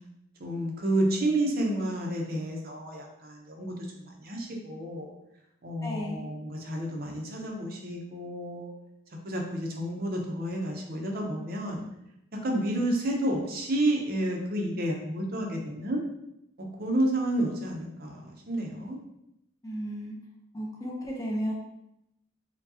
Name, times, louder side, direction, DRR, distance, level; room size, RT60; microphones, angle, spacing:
voice 1, 0.4-5.1 5.6-8.7 9.2-11.8 12.4-16.0 16.8-19.0, right 1 dB, 45° right, 1 dB, 0.7 m, -30 dB
voice 2, 5.8-6.3 19.6-20.1 20.5-21.5, equal, 15° left, -2 dB, 0.6 m, -33 dB
4.6 x 2.3 x 2.7 m, 0.83 s
head